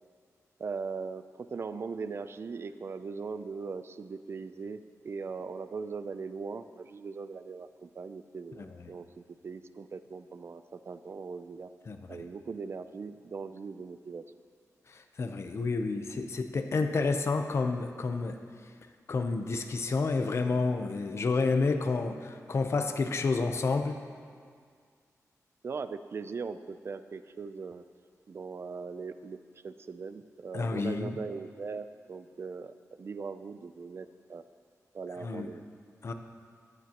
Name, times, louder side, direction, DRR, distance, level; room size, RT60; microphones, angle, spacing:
voice 1, 0.6-9.1 9.4-11.7 12.1-14.2 25.6-27.8 28.3-29.4 29.6-34.4 34.9-35.6, right 5 dB, 45° right, 11 dB, 0.4 m, -40 dB
voice 2, 15.2-18.4 19.1-24.0 30.5-31.2 35.2-35.5 36.0-36.1, left 3 dB, 50° left, 7 dB, 0.8 m, -29 dB
17.0 x 12.0 x 3.0 m, 2.1 s
wide cardioid pair, 140°, 6 cm